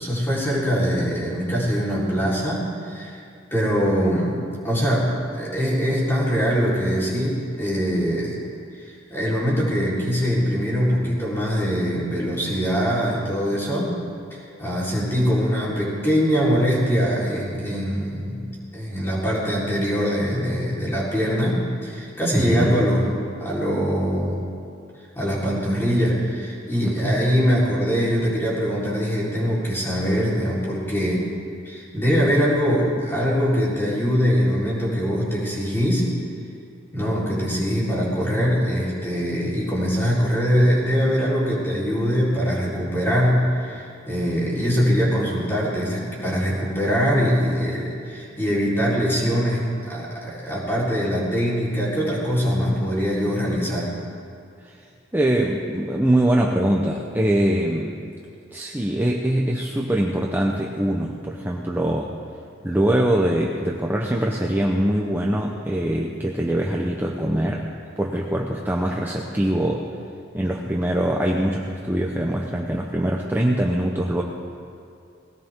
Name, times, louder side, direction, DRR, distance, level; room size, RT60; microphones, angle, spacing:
voice 1, 0.0-3.2 3.5-8.4 8.8-14.0 14.3-18.4 18.7-23.1 23.4-24.4 25.2-31.3 31.7-36.1 36.9-53.9, equal, 10° left, -7 dB, 4.1 m, -22 dB
voice 2, 22.3-22.8 26.8-27.2 54.6-54.8 55.1-58.0 58.5-62.1 62.6-67.7 68.0-69.9 70.3-74.2, right 1 dB, 10° right, -1 dB, 0.9 m, -23 dB
20.0 x 17.0 x 3.7 m, 2.5 s
head